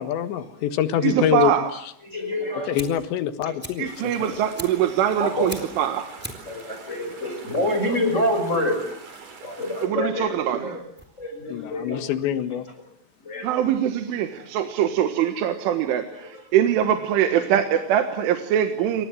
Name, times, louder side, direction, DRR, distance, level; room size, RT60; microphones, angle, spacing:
voice 1, 0.0-1.5 2.7-4.3 11.5-12.7, left 10 dB, 70° left, 11 dB, 3.6 m, -25 dB
voice 2, 1.0-1.7 3.8-6.1 9.8-10.8 13.4-19.1, right 10 dB, 75° right, 7 dB, 4.0 m, -23 dB
voice 3, 2.1-2.8 3.4-3.5 5.2-5.5 6.5-8.8 9.4-10.3 10.6-10.7 11.2-12.0 13.2-13.6 15.5-15.6, left 1 dB, 15° left, 6 dB, 5.5 m, -26 dB
Fire, 2.7-12.8, equal, 5° right, 2.8 m, -43 dB
sound 1, 3.9-9.9, right 4 dB, 45° right, 5.8 m, -44 dB
29.5 x 26.5 x 7.6 m, 0.66 s
omnidirectional pair, 5.7 m